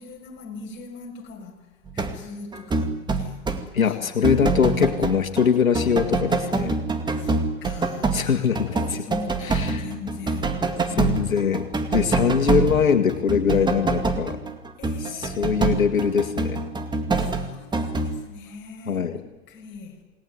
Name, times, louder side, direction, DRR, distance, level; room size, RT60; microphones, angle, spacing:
voice 1, 0.0-3.5 3.8-4.2 6.4-6.5 7.1-10.6 10.9-11.4 14.8-15.8 17.1-20.0, left 4 dB, 30° left, 1 dB, 7.2 m, -41 dB
sound 1, 1.9-2.2 2.5-5.5 5.7-18.2, right 3 dB, 10° right, 2.2 m, -25 dB
voice 2, 3.7-6.8 8.1-8.6 9.4-9.8 11.0-11.6 11.9-14.4 15.0-16.6 18.9-19.1, left 7 dB, 85° left, 6 dB, 2.2 m, -22 dB
28.0 x 20.0 x 9.5 m, 1.1 s
hypercardioid pair, 120°, 40 cm